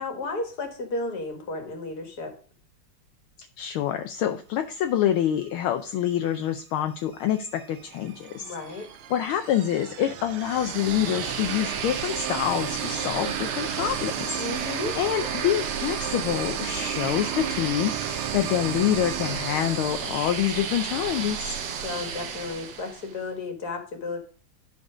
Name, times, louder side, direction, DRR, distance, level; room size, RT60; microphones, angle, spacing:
voice 1, 0.0-2.3 8.4-8.9 14.4-15.0 21.8-24.2, left 3 dB, 50° left, 4 dB, 2.1 m, -33 dB
voice 2, 3.6-8.5 9.1-21.6, left 11 dB, 75° left, 7 dB, 1.4 m, -26 dB
sound 1, 7.0-20.8, right 10 dB, 80° right, 1.6 m, -35 dB
sound 2, 10.4-23.2, right 7 dB, 60° right, 1.3 m, -33 dB
11.5 x 4.0 x 4.9 m, 0.40 s
omnidirectional pair, 2.4 m